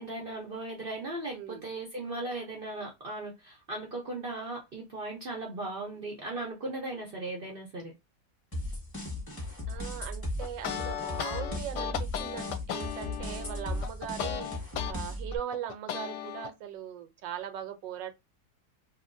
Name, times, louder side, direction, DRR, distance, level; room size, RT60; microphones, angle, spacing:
voice 1, 0.0-7.9, right 2 dB, 60° right, 0.6 m, -37 dB
voice 2, 1.3-1.7 9.7-14.5 14.9-18.1, right 10 dB, 85° right, 1.3 m, -40 dB
sound 1, 8.5-15.4, left 1 dB, 15° left, 0.9 m, -37 dB
sound 2, 10.4-14.9 15.3-16.5, left 10 dB, 75° left, 1.1 m, -36 dB
2.8 x 2.8 x 2.5 m
omnidirectional pair, 2.0 m